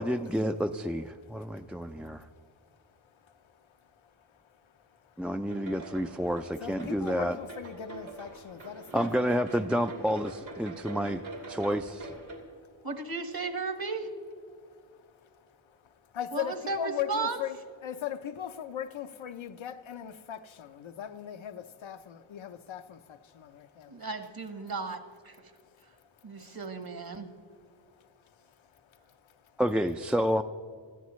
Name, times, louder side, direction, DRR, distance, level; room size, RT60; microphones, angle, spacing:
voice 1, 0.0-2.2 5.2-7.4 8.9-12.1 29.6-30.4, equal, 5° right, 0.3 m, -29 dB
voice 2, 1.4-5.3 6.6-9.1 9.6-9.7 12.3-12.9 15.5-24.1 25.5-25.6 26.1-26.6 27.5-29.6, left 9 dB, 80° left, 0.7 m, -41 dB
sound 1, 5.5-12.4, right 2 dB, 80° right, 3.1 m, -44 dB
voice 3, 12.8-14.1 16.3-17.4 23.9-25.4 26.2-27.3, right 4 dB, 50° right, 1.4 m, -35 dB
20.0 x 13.5 x 3.1 m
wide cardioid pair, 70°, 46 cm